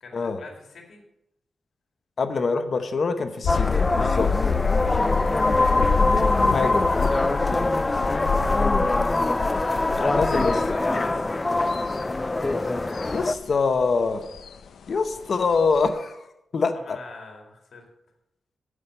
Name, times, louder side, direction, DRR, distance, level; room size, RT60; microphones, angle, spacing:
voice 1, 0.0-1.0 8.7-9.1 9.5-10.2 10.6-11.3 16.7-17.9, left 3 dB, 65° left, 1 dB, 2.1 m, -44 dB
voice 2, 2.2-4.3 6.4-6.9 9.9-10.6 13.1-14.2 14.9-16.3 16.5-17.0, left 4 dB, 45° left, 8 dB, 0.9 m, -25 dB
sound 1, 3.4-15.9, left 5 dB, 80° left, 0.5 m, -28 dB
sound 2, 3.5-13.3, left 2 dB, 20° left, 0.3 m, -23 dB
9.8 x 7.5 x 5.4 m, 0.85 s
wide cardioid pair, 175°, 0 cm